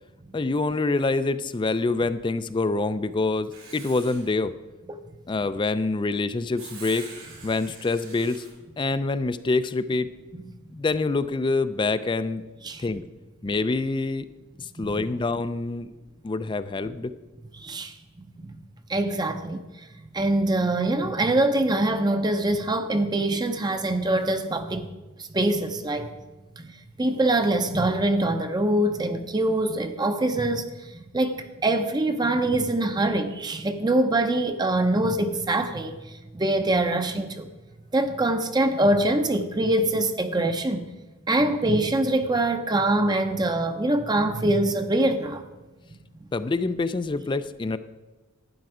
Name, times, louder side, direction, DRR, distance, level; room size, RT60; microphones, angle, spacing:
voice 1, 0.3-4.5 5.3-7.1 7.4-8.4 8.8-10.1 10.7-12.4 12.8-13.0 13.4-14.3 14.6-15.9 16.2-17.1 46.3-47.8, left 3 dB, 25° left, 0.4 m, -26 dB
Writing, 3.5-4.3 6.6-8.5, right 4 dB, 90° right, 3.9 m, -44 dB
voice 2, 17.6-18.0 18.9-19.6 20.1-24.9 25.2-26.1 26.6-26.7 27.0-36.0 36.3-37.5 37.9-40.9 41.3-45.4, right 1 dB, 20° right, 0.6 m, -24 dB
12.0 x 9.3 x 4.9 m
head